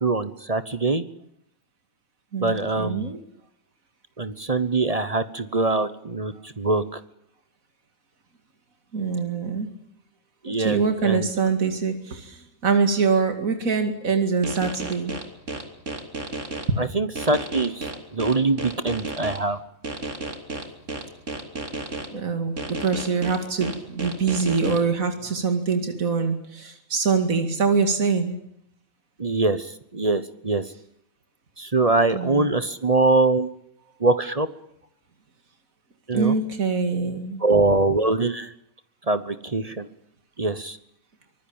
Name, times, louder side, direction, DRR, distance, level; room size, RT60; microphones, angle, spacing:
voice 1, 0.0-1.0 2.4-3.1 4.2-7.0 10.4-11.3 16.8-19.6 29.2-30.6 31.6-33.5 34.0-34.5 36.1-36.3 37.4-38.5 39.1-39.9 40.4-40.8, right 3 dB, 30° right, 13 dB, 1.1 m, -23 dB
voice 2, 2.3-3.2 8.9-9.7 10.5-15.1 22.1-28.3 32.1-32.5 36.1-37.4, right 5 dB, 80° right, 7 dB, 2.7 m, -24 dB
sound 1, 14.4-16.7 17.2-19.4 19.8-22.1 22.6-24.8, right 2 dB, 60° right, 3.5 m, -32 dB
25.0 x 19.5 x 8.8 m, 0.73 s
omnidirectional pair, 1.4 m